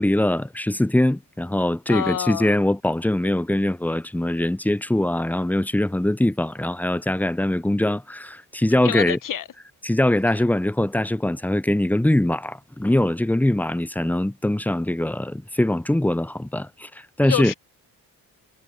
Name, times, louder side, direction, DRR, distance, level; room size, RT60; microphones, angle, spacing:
voice 1, 0.0-9.2 9.8-17.5, left 1 dB, 5° left, 0.5 m, -22 dB
voice 2, 1.9-2.6 8.8-9.4 17.2-17.5, left 10 dB, 55° left, 0.9 m, -27 dB
cardioid pair, 75°, 38 cm